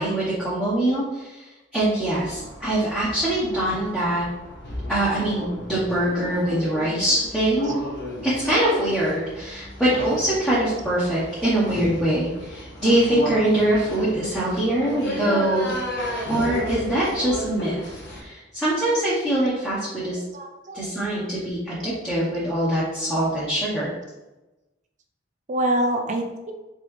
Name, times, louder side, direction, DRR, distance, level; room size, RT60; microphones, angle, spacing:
voice 1, 0.0-4.2 4.9-7.7 8.2-15.7 16.3-20.2 20.7-23.9, right 1 dB, 5° left, -9 dB, 0.8 m, -23 dB
sound 1, 2.1-18.2, equal, 60° left, 1.3 m, -34 dB
voice 2, 20.3-20.9 25.5-26.5, right 1 dB, 40° right, 5 dB, 0.5 m, -26 dB
3.6 x 3.4 x 3.2 m, 1.0 s
head